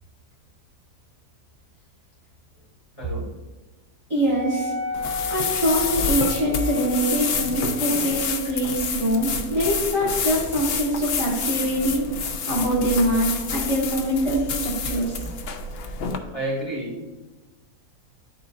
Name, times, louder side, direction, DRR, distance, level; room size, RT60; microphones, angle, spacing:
voice 1, 3.0-3.3 16.3-17.0, right 1 dB, 20° left, -6 dB, 2.2 m, -30 dB
voice 2, 4.1-15.3, right 1 dB, 20° right, -6 dB, 1.1 m, -24 dB
Wind instrument woodwind instrument, 4.3-8.2, left 3 dB, 45° right, 1.9 m, -33 dB
sound 1, 4.9-16.2, left 5 dB, 90° left, 0.5 m, -28 dB
11.0 x 4.0 x 2.5 m, 1.1 s
omnidirectional pair, 1.8 m